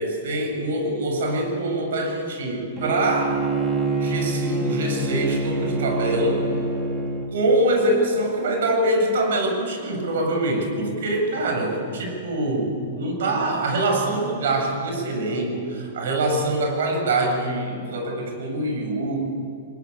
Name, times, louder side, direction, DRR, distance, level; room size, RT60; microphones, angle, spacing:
voice 1, 0.0-3.4 4.0-6.5 7.3-19.2, right 1 dB, 75° right, 3 dB, 7.2 m, -24 dB
Bowed string instrument, 2.8-7.3, right 2 dB, 25° right, 3.5 m, -26 dB
23.0 x 21.0 x 9.6 m, 2.5 s
hypercardioid pair, 130°, 0 cm